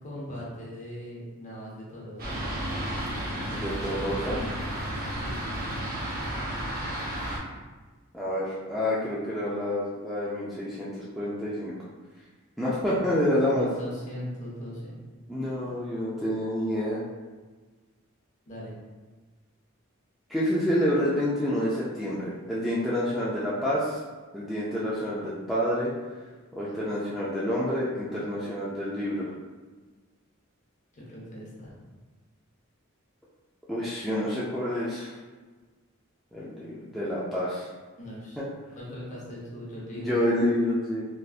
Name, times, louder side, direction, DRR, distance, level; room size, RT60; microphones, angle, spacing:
voice 1, 0.0-2.4 5.2-5.4 13.5-15.0 15.6-15.7 18.5-18.7 30.9-31.9 38.0-38.4 38.7-40.2, equal, 35° left, -6 dB, 0.8 m, -39 dB
Fixed-wing aircraft airplane, 2.2-7.4, right 1 dB, 45° right, 0.6 m, -32 dB
voice 2, 3.3-4.4 8.1-11.7 12.6-13.7 15.3-17.0 20.3-24.0 24.3-25.9 26.5-29.3 33.7-35.1 36.3-37.7 38.4-38.5 39.9-41.0, left 1 dB, ahead, -9 dB, 0.3 m, -28 dB
3.3 x 2.5 x 2.4 m, 1.3 s
head